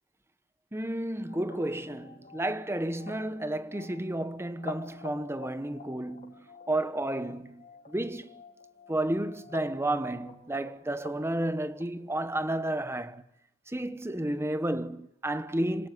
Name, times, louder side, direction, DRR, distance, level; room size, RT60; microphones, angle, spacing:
voice 1, 0.7-8.3 8.9-13.2 13.7-15.9, right 1 dB, 10° right, 1.1 m, -32 dB
sound 1, 1.2-12.3, left 4 dB, 40° left, 3.5 m, -50 dB
26.5 x 17.5 x 9.5 m
head